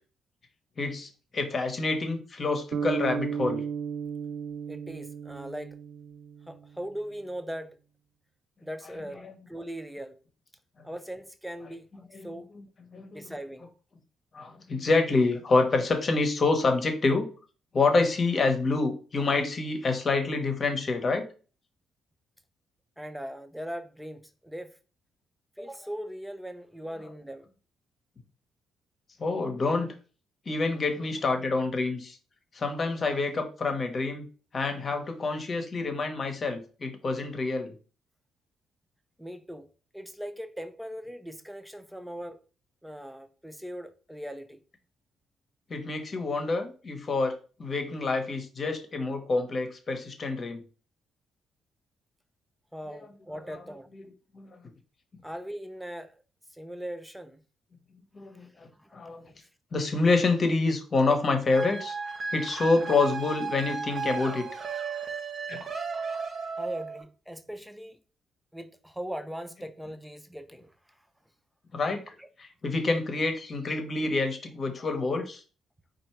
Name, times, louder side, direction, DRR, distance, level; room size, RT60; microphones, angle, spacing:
voice 1, 0.8-3.6 12.1-12.3 12.9-13.2 14.3-17.3 17.7-21.2 29.2-29.9 30.5-32.2 32.5-34.2 34.5-37.7 45.7-47.3 47.6-50.6 54.3-54.6 58.1-59.2 59.7-62.0 62.3-64.4 65.5-65.6 71.7-72.0 72.6-75.4, left 3 dB, 40° left, 1.0 m, -27 dB
sound 1, 2.7-7.0, right 7 dB, 60° right, 0.3 m, -35 dB
voice 2, 4.7-5.8 6.5-7.8 8.6-10.2 10.8-12.5 13.1-13.7 23.0-24.8 25.6-27.5 39.2-39.7 39.9-42.4 42.8-44.6 52.7-53.9 55.2-56.1 56.5-57.4 58.3-58.5 58.8-59.0 59.3-59.5 66.6-68.0 68.5-70.7 72.2-72.3, equal, 5° right, 0.5 m, -40 dB
sound 2, 61.5-67.0, right 5 dB, 40° right, 0.9 m, -35 dB
4.4 x 2.5 x 4.4 m
cardioid pair, 90°, 0 cm